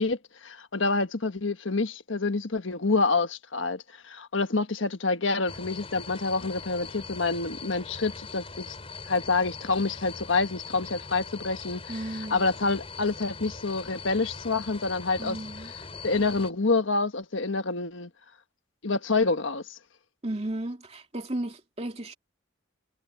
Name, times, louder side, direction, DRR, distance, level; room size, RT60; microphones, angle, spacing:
voice 1, 0.0-8.7 9.1-11.9 12.3-15.4 16.0-18.1 18.8-19.8, left 3 dB, 70° left, 1.4 m, -27 dB
sound 1, 5.5-16.5, left 4 dB, 30° left, 6.2 m, -41 dB
voice 2, 11.9-12.5 15.2-15.7 20.2-22.2, right 1 dB, 30° right, 2.6 m, -34 dB
head